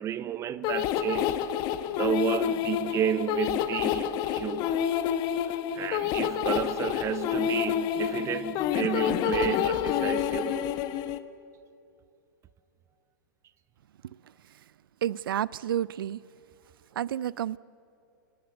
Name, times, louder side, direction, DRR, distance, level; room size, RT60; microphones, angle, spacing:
voice 1, 0.0-1.4 2.0-4.8 5.4-10.8, right 10 dB, 25° right, 0.6 m, -32 dB
sound 1, 0.6-11.2, left 10 dB, 40° left, 1.1 m, -28 dB
voice 2, 15.0-16.2 16.9-17.6, right 10 dB, 80° right, 0.4 m, -30 dB
27.5 x 18.5 x 7.9 m
hypercardioid pair, 130°, 12 cm